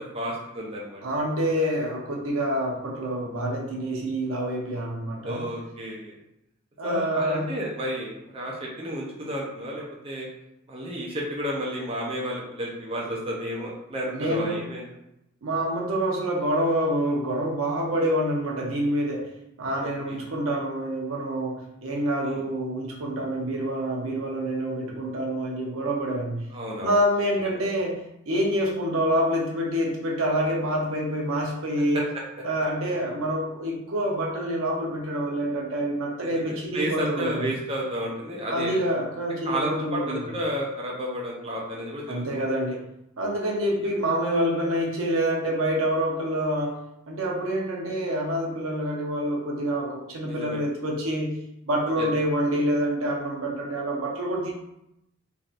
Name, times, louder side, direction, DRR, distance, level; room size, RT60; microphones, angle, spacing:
voice 1, 0.0-1.0 5.2-6.1 6.8-10.3 10.7-14.9 19.8-20.2 22.2-22.4 26.5-27.0 31.9-32.2 36.2-38.8 39.4-42.4 50.2-50.6 52.0-52.1, equal, 30° right, -3 dB, 0.5 m, -32 dB
voice 2, 1.0-5.4 6.8-7.5 14.1-14.6 15.4-19.3 19.6-26.5 26.8-32.1 32.4-37.5 38.5-40.2 42.1-42.9 43.2-51.3 51.7-54.5, equal, 85° right, 0 dB, 0.7 m, -27 dB
3.3 x 2.6 x 2.4 m, 0.83 s
head